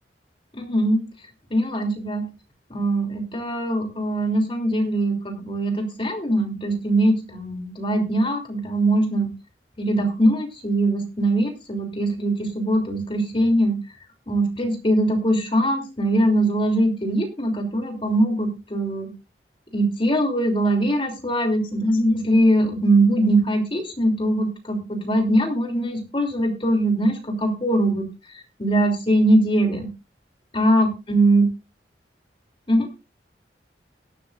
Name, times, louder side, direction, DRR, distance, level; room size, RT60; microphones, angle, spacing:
voice 1, 0.5-1.0 1.5-2.2 2.7-9.3 9.8-13.7 14.3-19.1 19.7-28.1 28.6-29.9 30.5-31.5 32.7-32.9, right 1 dB, 30° left, 3 dB, 3.0 m, -21 dB
17.5 x 12.0 x 2.5 m, 0.28 s
head